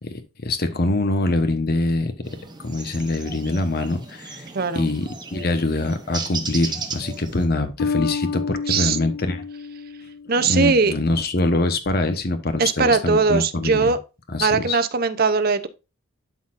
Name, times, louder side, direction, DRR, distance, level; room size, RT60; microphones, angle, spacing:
voice 1, 0.0-2.1 2.6-4.5 4.7-9.4 10.4-13.9 14.3-14.8, left 2 dB, 50° left, 1.0 m, -24 dB
sound 1, 2.2-7.5, right 4 dB, 20° right, 0.9 m, -35 dB
voice 2, 4.5-4.9 8.7-9.0 10.3-10.9 12.6-14.0 14.4-15.7, right 4 dB, 45° right, 0.6 m, -20 dB
Bass guitar, 7.8-10.8, left 5 dB, 70° left, 0.3 m, -29 dB
11.5 x 4.0 x 2.5 m
head